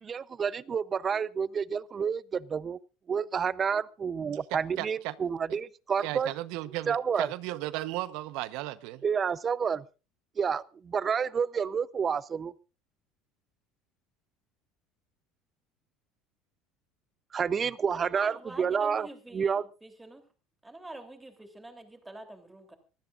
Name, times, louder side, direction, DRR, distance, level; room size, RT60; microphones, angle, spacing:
voice 1, 0.0-2.8 3.1-6.3 6.9-7.3 9.0-9.8 10.4-12.5 17.3-19.1 19.3-19.6, right 6 dB, 25° right, 0.7 m, -29 dB
voice 2, 4.5-5.1 5.5-5.6 6.0-9.0, right 16 dB, 70° right, 0.9 m, -35 dB
voice 3, 17.9-20.3 20.6-22.8, right 1 dB, 10° right, 3.2 m, -45 dB
25.0 x 15.5 x 2.5 m
cardioid pair, 135°, 0 cm